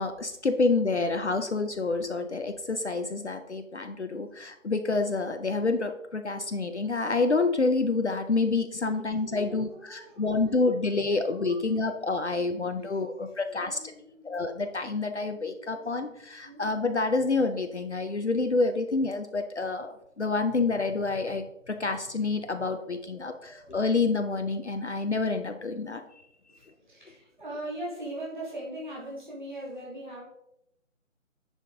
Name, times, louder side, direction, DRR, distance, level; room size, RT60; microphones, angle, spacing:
voice 1, 0.0-13.8 14.2-26.0, left 3 dB, 55° left, 7 dB, 0.7 m, -28 dB
voice 2, 8.8-10.6 11.1-11.6 12.8-14.8 15.2-16.1 16.4-16.8 22.6-24.0 26.5-30.2, right 1 dB, 35° right, -4 dB, 2.7 m, -42 dB
9.8 x 5.1 x 3.8 m, 0.80 s
figure-of-eight pair, 180°, 40 cm